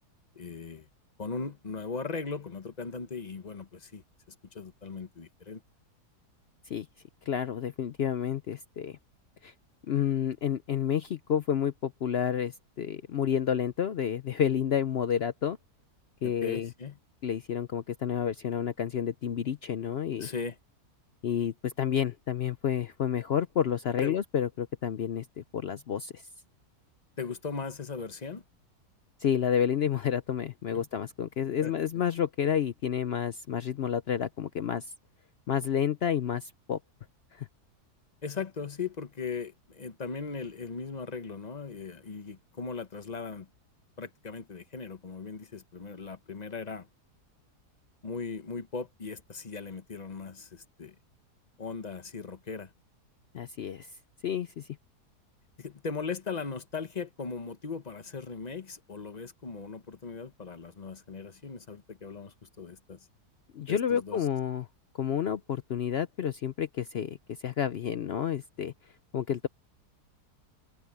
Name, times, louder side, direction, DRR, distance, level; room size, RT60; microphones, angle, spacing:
voice 1, 0.3-0.9 1.2-5.6 16.2-17.0 20.2-20.6 24.0-24.2 27.2-28.4 30.7-30.9 31.6-32.0 38.2-43.5 44.0-46.9 48.0-51.0 51.6-52.7 55.6-63.1 63.7-64.2, left 5 dB, 30° left, 0.9 m, -38 dB
voice 2, 7.3-9.0 9.4-9.5 9.9-15.6 16.2-16.7 17.2-20.3 21.2-26.2 29.2-34.9 35.5-36.8 37.3-37.5 53.3-53.9 54.2-54.7 63.5-64.7 64.9-68.7 69.1-69.5, left 8 dB, 65° left, 0.6 m, -30 dB
omnidirectional pair, 1.7 m